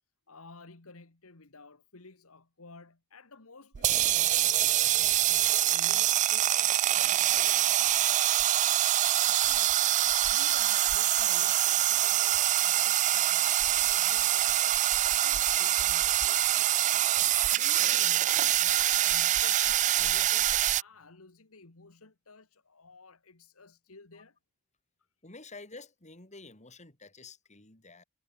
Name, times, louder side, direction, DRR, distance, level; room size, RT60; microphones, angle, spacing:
voice 1, 0.3-24.4, left 3 dB, 70° left, 1.8 m, -53 dB
sound 1, 3.7-20.8, right 13 dB, 35° right, 0.3 m, -25 dB
voice 2, 25.2-28.0, left 3 dB, 35° left, 4.1 m, -49 dB
head